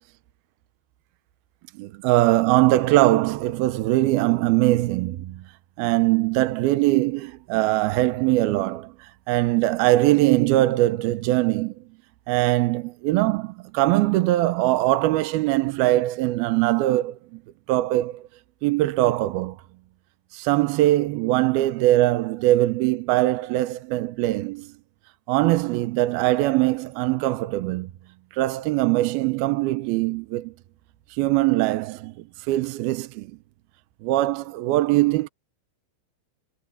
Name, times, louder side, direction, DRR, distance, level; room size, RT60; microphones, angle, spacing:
voice 1, 1.7-5.4 5.8-11.8 12.3-17.4 17.7-18.3 18.6-19.6 20.3-24.7 25.3-27.9 28.3-30.5 31.1-33.3 34.0-35.3, right 17 dB, 75° right, 2.5 m, -22 dB
omnidirectional pair, 4.7 m